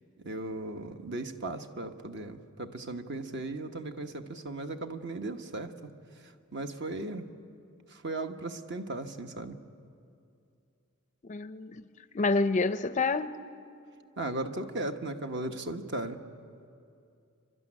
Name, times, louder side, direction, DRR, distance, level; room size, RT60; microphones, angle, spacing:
voice 1, 0.2-5.7 6.5-7.3 7.9-9.6 14.2-16.2, right 2 dB, 50° right, 1.1 m, -37 dB
voice 2, 11.2-11.8 12.1-13.4, left 3 dB, 35° left, 0.5 m, -28 dB
28.5 x 12.5 x 9.9 m
head